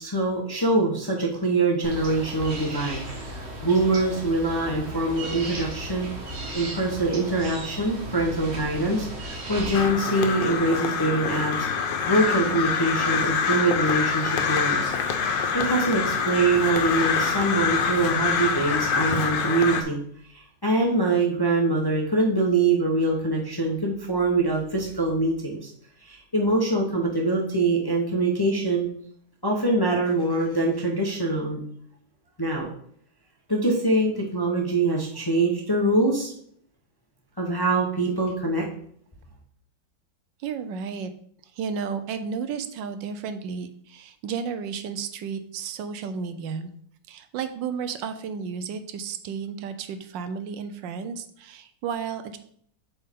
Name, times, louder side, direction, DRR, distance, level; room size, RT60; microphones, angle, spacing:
voice 1, 0.0-6.1 6.5-11.7 12.0-14.9 15.2-20.0 20.3-25.7 26.0-28.9 29.4-31.6 32.4-32.7 33.5-36.3 37.4-38.6, right 2 dB, 20° left, -1 dB, 0.6 m, -24 dB
sound 1, 1.8-9.9, right 1 dB, 40° right, 1.3 m, -35 dB
Crow, 9.7-19.8, left 6 dB, 90° left, 1.5 m, -25 dB
voice 2, 40.4-41.1 41.5-46.7 47.1-52.4, right 6 dB, 90° right, 10 dB, 1.4 m, -33 dB
7.8 x 4.4 x 3.6 m, 0.64 s
omnidirectional pair, 1.9 m